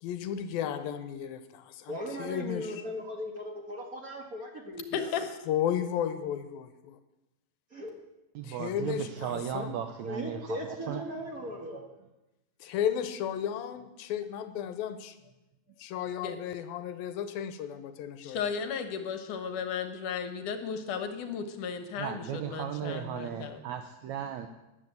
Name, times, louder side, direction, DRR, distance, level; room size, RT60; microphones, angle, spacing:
voice 1, 0.0-2.7 5.5-7.0 8.4-9.7 12.6-15.2 15.8-18.4, left 9 dB, 85° left, 10 dB, 2.7 m, -34 dB
voice 2, 1.9-5.2 7.7-7.9 9.6-11.8, equal, 40° right, 2 dB, 1.3 m, -38 dB
voice 3, 8.3-10.6 10.9-11.0 22.0-24.5, right 9 dB, 80° right, 8 dB, 1.7 m, -36 dB
voice 4, 18.2-23.6, left 7 dB, 65° left, 8 dB, 2.5 m, -35 dB
14.0 x 10.5 x 8.0 m, 0.98 s
omnidirectional pair, 4.1 m